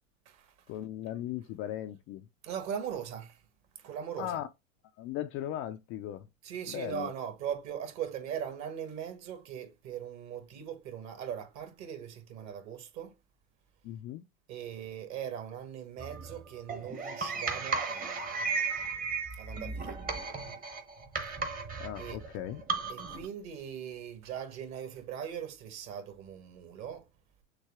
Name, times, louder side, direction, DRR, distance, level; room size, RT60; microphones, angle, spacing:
voice 1, 0.7-2.3 4.2-4.5 5.0-6.3 6.7-7.1 13.8-14.2 21.8-22.6, left 12 dB, 30° left, 0.4 m, -37 dB
voice 2, 2.4-3.4 3.8-4.4 6.4-13.2 14.5-20.0 22.0-22.2 22.9-27.1, right 8 dB, 45° right, 1.8 m, -40 dB
sound 1, 16.0-23.3, right 4 dB, 20° right, 1.1 m, -35 dB
6.5 x 2.3 x 3.5 m
hypercardioid pair, 110°, 40 cm